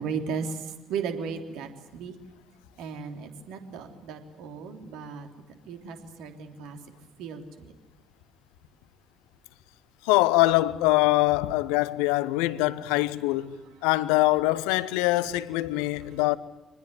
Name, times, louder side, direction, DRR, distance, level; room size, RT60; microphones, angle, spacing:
voice 1, 0.0-2.1 2.8-5.3 5.7-6.8 7.2-7.7, right 6 dB, 60° right, 3.3 m, -35 dB
voice 2, 10.0-16.4, left 18 dB, 65° left, 1.0 m, -23 dB
26.0 x 20.0 x 9.6 m
figure-of-eight pair, 45°, 0 cm